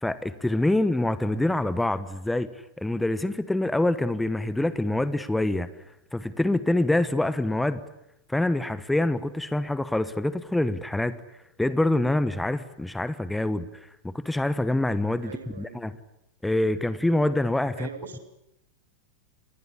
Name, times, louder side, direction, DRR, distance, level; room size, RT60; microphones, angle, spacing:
voice 1, 0.0-2.5 2.8-5.7 6.1-7.8 8.3-11.2 11.6-13.7 14.0-15.3 15.6-15.9 16.4-17.9, left 1 dB, 5° left, 15 dB, 1.1 m, -25 dB
voice 2, 15.2-15.9 17.7-18.2, right 6 dB, 65° right, 9 dB, 3.1 m, -41 dB
28.5 x 20.5 x 8.5 m, 0.85 s
figure-of-eight pair, 90°, 0 cm